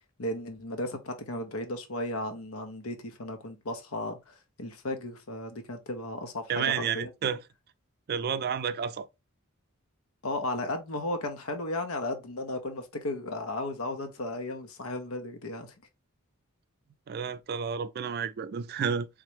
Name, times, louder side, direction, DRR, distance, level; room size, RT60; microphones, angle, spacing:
voice 1, 0.2-7.1 10.2-15.7, left 2 dB, 80° left, 0.8 m, -35 dB
voice 2, 6.5-7.4 8.1-9.1 17.1-19.1, right 7 dB, 45° right, 0.3 m, -30 dB
3.6 x 3.2 x 3.1 m
head